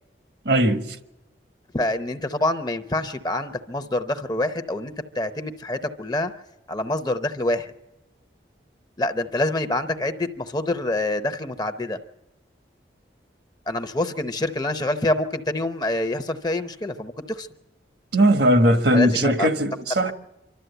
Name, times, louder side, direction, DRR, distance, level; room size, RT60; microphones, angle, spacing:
voice 1, 0.4-0.9 18.1-20.1, right 1 dB, 75° right, 1.4 m, -19 dB
voice 2, 1.7-6.3 6.7-7.7 9.0-12.0 13.7-17.5 18.9-19.5, left 1 dB, 20° left, 0.7 m, -26 dB
26.0 x 12.5 x 8.0 m
head